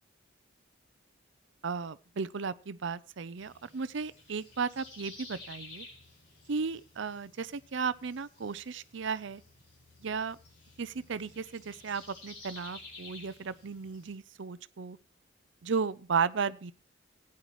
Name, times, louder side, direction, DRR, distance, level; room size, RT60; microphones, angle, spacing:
voice 1, 1.6-5.9 6.5-9.4 10.0-10.4 10.8-15.0 15.6-16.7, right 5 dB, 65° right, 0.5 m, -34 dB
sound 1, 3.4-14.2, left 3 dB, 55° left, 5.9 m, -52 dB
16.0 x 9.7 x 3.1 m
head